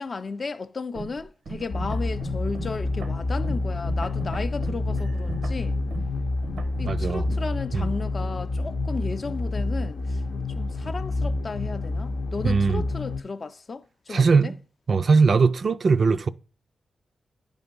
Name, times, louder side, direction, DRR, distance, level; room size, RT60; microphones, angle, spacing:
voice 1, 0.0-5.8 6.8-10.2 10.6-14.5, left 4 dB, 45° left, 0.5 m, -34 dB
sound 1, 1.0-6.9, right 4 dB, 80° right, 0.8 m, -39 dB
sound 2, 1.7-13.2, left 2 dB, 90° left, 0.7 m, -28 dB
voice 2, 6.9-7.4 7.7-7.9 12.4-12.8 14.1-14.6 14.9-16.3, right 4 dB, 55° right, 0.4 m, -20 dB
10.0 x 3.4 x 5.2 m
cardioid pair, 75°, 0 cm